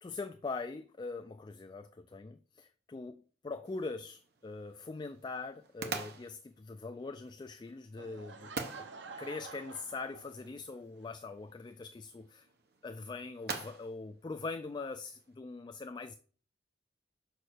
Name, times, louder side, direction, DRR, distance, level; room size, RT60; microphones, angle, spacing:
voice 1, 0.0-3.2 3.4-8.5 9.2-12.5 12.8-16.1, left 3 dB, 25° left, 0.3 m, -42 dB
sound 1, 3.6-15.3, right 4 dB, 60° right, 1.1 m, -47 dB
Laughter / Crowd, 8.0-10.8, right 4 dB, 80° right, 0.7 m, -49 dB
5.4 x 4.6 x 6.4 m
head